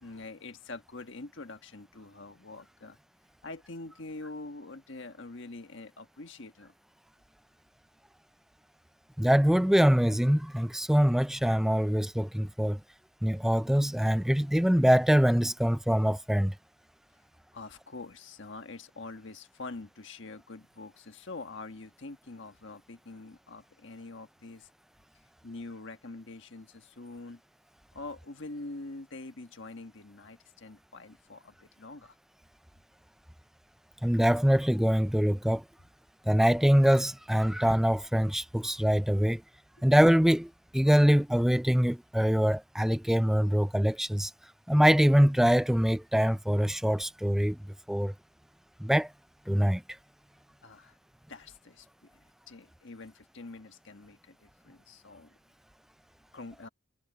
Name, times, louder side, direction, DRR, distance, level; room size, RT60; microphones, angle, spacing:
voice 1, 0.0-3.0 3.4-6.7 17.5-24.7 25.4-27.4 27.9-32.2 50.6-51.0 51.3-55.4 56.3-56.7, left 3 dB, 60° left, 1.5 m, -45 dB
voice 2, 9.2-12.8 13.2-16.5 34.0-35.6 36.3-39.4 39.8-44.3 44.7-47.6 47.9-48.1 48.8-49.1 49.5-49.8, equal, ahead, 0.4 m, -24 dB
head